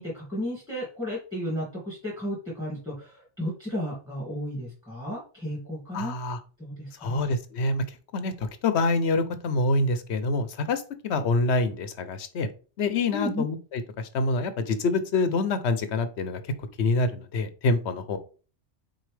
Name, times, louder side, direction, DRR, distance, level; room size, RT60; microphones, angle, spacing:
voice 1, 0.0-6.2 6.6-7.3 13.1-13.4, equal, 5° right, -4 dB, 2.4 m, -33 dB
voice 2, 5.9-6.4 7.0-12.5 12.8-16.5 16.8-18.2, left 3 dB, 70° left, 11 dB, 1.0 m, -26 dB
6.3 x 4.4 x 3.4 m, 0.37 s
omnidirectional pair, 1.2 m